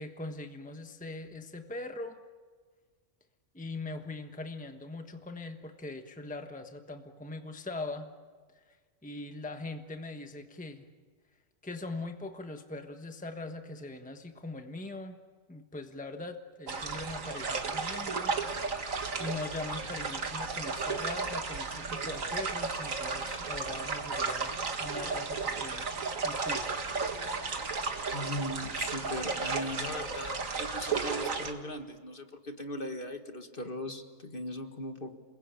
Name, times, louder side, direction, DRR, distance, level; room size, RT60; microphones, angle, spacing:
voice 1, 0.0-2.2 3.5-8.1 8.5-8.8 9.0-10.9 11.6-15.2 15.5-18.3 19.2-24.5 24.8-25.9 26.2-26.6, left 2 dB, 5° left, 6 dB, 1.2 m, -41 dB
sound 1, 16.7-31.5, right 4 dB, 85° right, 2.2 m, -34 dB
voice 2, 28.1-35.1, left 1 dB, 45° left, 6 dB, 1.9 m, -39 dB
29.0 x 21.0 x 8.7 m, 1.5 s
omnidirectional pair, 1.3 m